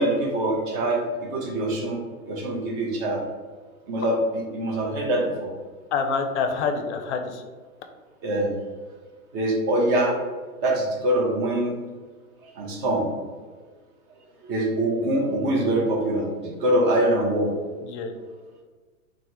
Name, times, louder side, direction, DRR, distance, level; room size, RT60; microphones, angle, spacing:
voice 1, 0.0-3.2 3.9-5.5 8.2-8.5 9.3-10.2 10.6-11.8 12.4-13.1 14.4-17.5, right 1 dB, 25° right, -1 dB, 0.6 m, -24 dB
voice 2, 5.9-7.4 17.8-18.1, left 5 dB, 55° left, 6 dB, 0.5 m, -26 dB
3.3 x 2.1 x 2.8 m, 1.4 s
hypercardioid pair, 130°, 44 cm